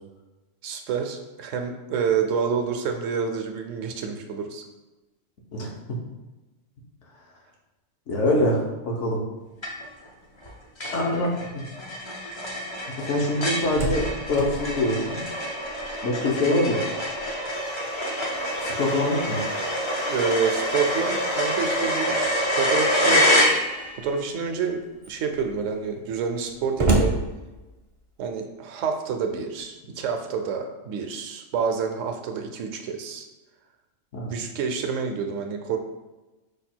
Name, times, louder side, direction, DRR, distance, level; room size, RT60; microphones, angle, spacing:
voice 1, 0.6-4.6 20.1-23.2 24.0-27.2 28.2-33.3 34.2-35.8, right 6 dB, 75° right, 5 dB, 0.9 m, -28 dB
voice 2, 8.1-9.2 10.9-11.3 11.5-11.6 13.0-15.2 16.0-16.8 18.6-19.4 34.1-34.3, left 1 dB, 65° left, -1 dB, 1.2 m, -24 dB
sound 1, 9.6-10.1 10.4-10.5 10.8-24.1, equal, 40° left, 0.4 m, -26 dB
Slam, 13.3-16.1 16.5-16.6 17.0-22.7 23.6-24.1 24.7-24.8 25.0-28.1, right 2 dB, 35° right, 0.5 m, -32 dB
5.2 x 2.3 x 4.3 m, 1.1 s
omnidirectional pair, 1.4 m